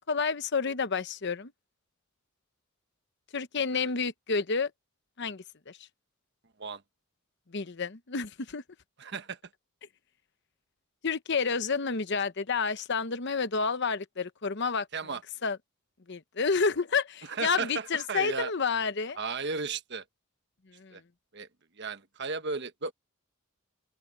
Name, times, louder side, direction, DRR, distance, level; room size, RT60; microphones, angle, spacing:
voice 1, 0.1-1.5 3.3-4.7 5.2-5.8 7.5-8.6 11.0-14.9 15.4-15.6 16.1-19.2 20.7-21.0, left 5 dB, 55° left, 0.9 m, -30 dB
voice 2, 9.0-9.4 14.9-15.2 17.3-18.5 19.2-20.0 20.9-21.0 21.3-21.5 21.8-22.9, right 4 dB, 55° right, 1.2 m, -35 dB
open air
head